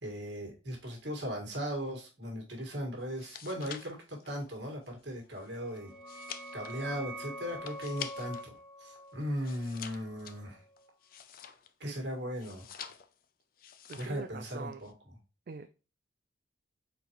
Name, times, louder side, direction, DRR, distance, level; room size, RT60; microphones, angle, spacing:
voice 1, 0.0-6.2 6.5-10.6 11.8-12.6 13.9-14.9, equal, 70° right, 1.7 m, -38 dB
sound 1, 3.0-8.5 8.8-11.9 12.3-13.2 13.6-14.3 14.5-14.9, left 9 dB, 50° left, 0.4 m, -47 dB
sound 2, 5.4-10.9, equal, ahead, 2.1 m, -46 dB
voice 2, 13.9-14.8 15.5-15.7, right 5 dB, 50° right, 0.3 m, -42 dB
4.5 x 4.0 x 2.9 m
head